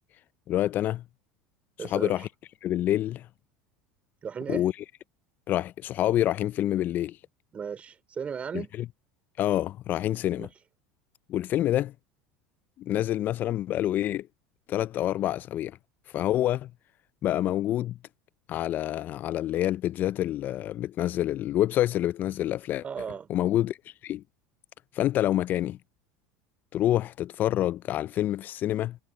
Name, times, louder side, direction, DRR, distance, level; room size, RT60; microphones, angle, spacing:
voice 1, 0.5-1.0 1.9-2.3 2.6-3.3 4.5-4.7 5.5-7.2 9.4-10.5 11.3-11.9 12.8-14.3 14.7-15.8 16.1-16.7 17.2-18.0 18.5-22.8 23.3-23.8 24.0-24.2 24.9-25.8 26.7-29.0, left 13 dB, 45° left, 0.3 m, -27 dB
voice 2, 1.8-2.3 4.2-4.7 7.5-8.7 10.3-10.5 22.8-23.3, right 7 dB, 30° right, 3.9 m, -36 dB
hypercardioid pair, 90°, 4 cm